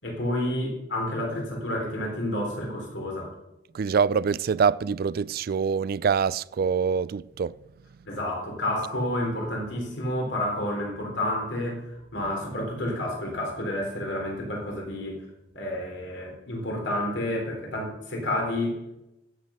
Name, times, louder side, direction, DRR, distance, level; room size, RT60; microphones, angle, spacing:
voice 1, 0.0-3.3 8.1-15.2 15.5-18.8, left 1 dB, 70° left, 3.8 m, -30 dB
voice 2, 3.7-7.6, right 6 dB, 55° right, 0.4 m, -25 dB
14.0 x 8.2 x 5.8 m
head